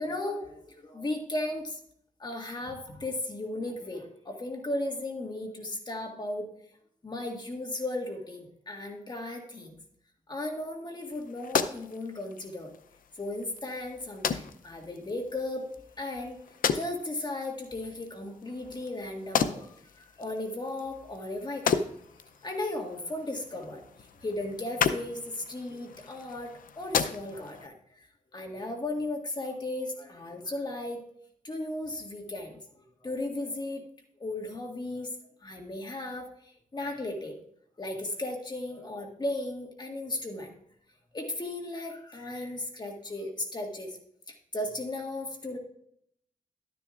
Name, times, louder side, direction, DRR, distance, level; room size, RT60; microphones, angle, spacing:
voice 1, 0.0-1.8 2.2-6.4 7.0-9.8 10.3-12.7 13.2-15.7 16.0-16.4 16.7-21.9 22.4-23.8 24.2-27.8 28.3-31.0 31.4-32.6 33.0-33.8 34.2-35.1 35.4-36.3 36.7-37.4 37.8-40.5 41.1-44.0 44.3-45.6, left 2 dB, 30° left, 2 dB, 1.8 m, -35 dB
sound 1, 11.0-27.7, left 7 dB, 85° left, 0.6 m, -35 dB
12.0 x 10.0 x 2.5 m, 0.70 s
wide cardioid pair, 105°, 14 cm